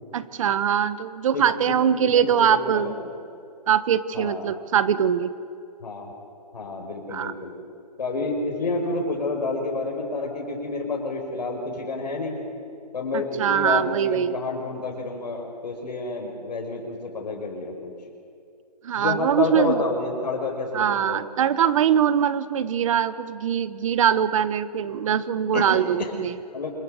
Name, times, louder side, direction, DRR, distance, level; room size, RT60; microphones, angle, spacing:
voice 1, 0.1-3.0 3.7-5.3 7.1-7.3 13.1-14.4 18.8-19.8 20.7-26.3, right 9 dB, 50° right, 14 dB, 1.2 m, -22 dB
voice 2, 1.3-3.1 4.1-4.5 5.8-6.1 6.5-7.5 8.0-12.4 12.9-17.9 19.0-21.2 25.5-25.7 26.0-26.1 26.5-26.7, left 3 dB, 80° left, 1 dB, 5.2 m, -29 dB
26.0 x 23.0 x 6.5 m, 2.4 s
hypercardioid pair, 150°, 21 cm